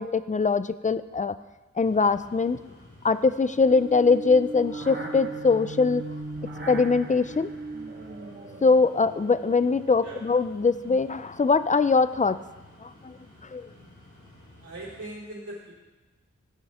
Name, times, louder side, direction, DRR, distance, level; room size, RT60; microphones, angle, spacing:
voice 1, 0.0-1.4 1.8-2.6 3.0-6.0 6.7-7.5 8.6-12.4 12.8-13.1 13.5-13.7, left 4 dB, 25° left, 14 dB, 0.5 m, -22 dB
sound 1, 1.8-15.1, left 1 dB, 85° left, 4.5 m, -53 dB
sound 2, 3.7-10.1, right 2 dB, 40° right, 1.5 m, -38 dB
voice 2, 14.6-15.7, right 1 dB, 70° right, -10 dB, 4.0 m, -40 dB
16.0 x 8.4 x 3.6 m, 1.2 s
wide cardioid pair, 55°, 30 cm